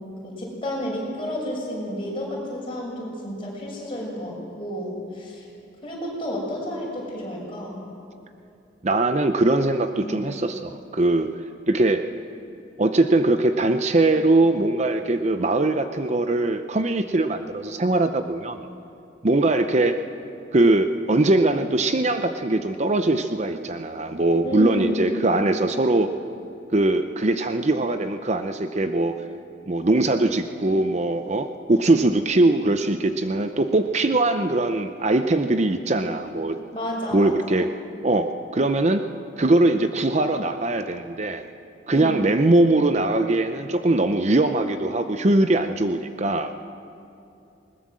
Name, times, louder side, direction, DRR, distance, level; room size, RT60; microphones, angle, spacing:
voice 1, 0.0-5.4 5.8-7.8 9.9-10.3 24.4-25.1 36.7-37.5 41.9-42.3, equal, 30° left, -3 dB, 6.5 m, -31 dB
voice 2, 8.8-11.3 11.7-12.0 12.8-18.6 19.2-20.0 20.5-26.1 26.7-29.1 29.7-36.6 37.1-37.7 38.0-39.0 39.4-41.4 41.9-46.5, right 2 dB, 40° right, 8 dB, 0.7 m, -21 dB
20.5 x 20.0 x 7.5 m, 2.7 s
head